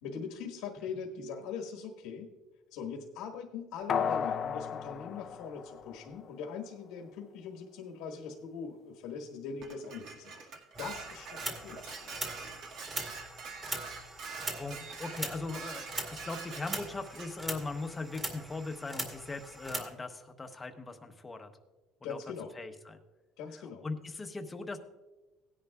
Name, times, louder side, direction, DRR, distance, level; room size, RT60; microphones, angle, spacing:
voice 1, 0.0-2.3 2.7-10.4 10.8-12.1 22.0-22.5 23.4-23.9, left 5 dB, 90° left, 0 dB, 1.4 m, -41 dB
sound 1, 3.9-6.5 6.8-6.9, left 7 dB, 40° left, 0.5 m, -34 dB
Dishes pots and pans, 9.6-17.3, right 5 dB, 60° right, 1.8 m, -44 dB
sound 2, 10.7-19.9, right 1 dB, 15° right, 2.0 m, -41 dB
voice 2, 14.3-21.5 22.0-22.2 22.5-23.0 23.6-24.8, left 3 dB, 15° left, 7 dB, 0.9 m, -40 dB
17.5 x 10.5 x 2.4 m, 1.2 s
cardioid pair, 135°, 0 cm